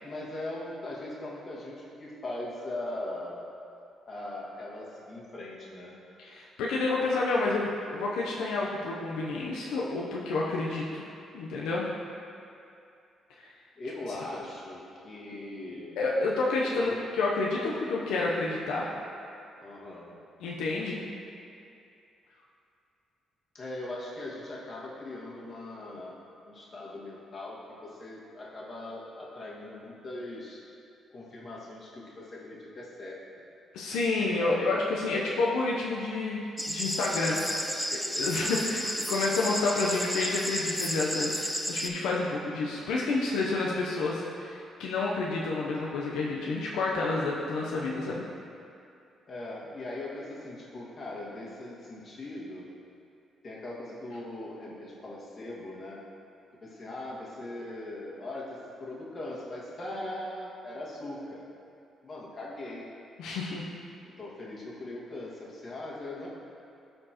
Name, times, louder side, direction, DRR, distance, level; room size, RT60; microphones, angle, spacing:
voice 1, 0.0-3.4 4.1-6.0 13.8-16.0 16.7-17.0 19.6-20.1 23.5-26.2 26.4-30.6 31.1-33.2 34.4-34.7 37.3-37.7 49.3-52.7 53.4-56.0 56.6-61.5 62.0-62.8 64.0-66.3, left 1 dB, 40° left, -5 dB, 1.7 m, -40 dB
voice 2, 6.2-11.9 16.0-18.9 20.4-21.0 33.7-37.4 38.1-48.2 63.2-63.7, left 3 dB, 90° left, -4 dB, 0.7 m, -29 dB
sound 1, 36.6-41.9, equal, ahead, 0.5 m, -32 dB
13.0 x 4.4 x 2.9 m, 2.6 s
cardioid pair, 90°, 0 cm